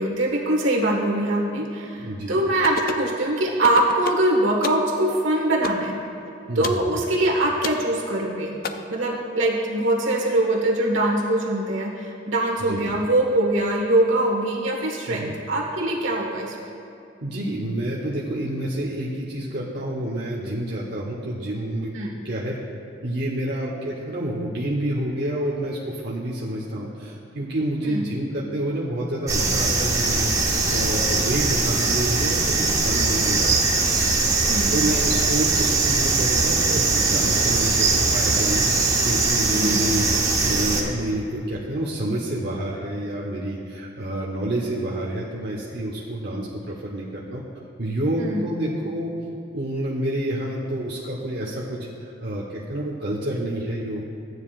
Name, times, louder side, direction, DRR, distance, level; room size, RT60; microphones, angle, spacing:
voice 1, 0.0-6.0 6.5-8.6 8.9-16.6 21.9-22.1 27.8-28.0 34.4-34.7 39.5-39.9 48.2-48.4, right 1 dB, 80° right, -2 dB, 1.5 m, -23 dB
voice 2, 1.9-2.4 6.5-6.9 12.6-12.9 15.1-15.3 17.2-21.9 22.2-22.6 23.0-33.6 34.5-40.1 40.4-47.4 47.8-49.1 49.5-54.1, right 1 dB, 55° right, -6 dB, 1.0 m, -28 dB
sound 1, 2.6-3.1 3.6-4.3 4.6-4.9 5.6-5.9 6.6-6.8 7.6-7.8 8.6-8.7, left 5 dB, 45° left, 0.4 m, -30 dB
sound 2, 29.3-40.8, right 3 dB, 15° right, 0.9 m, -21 dB
14.0 x 9.4 x 2.5 m, 2.6 s
head